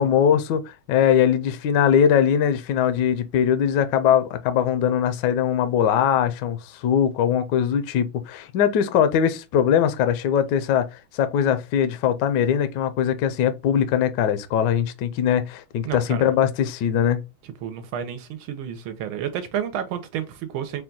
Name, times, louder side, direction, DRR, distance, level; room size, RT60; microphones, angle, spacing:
voice 1, 0.0-17.2, left 8 dB, 75° left, 1.0 m, -21 dB
voice 2, 15.8-16.3 17.4-20.8, right 9 dB, 85° right, 1.5 m, -31 dB
4.3 x 2.2 x 3.7 m
omnidirectional pair, 2.3 m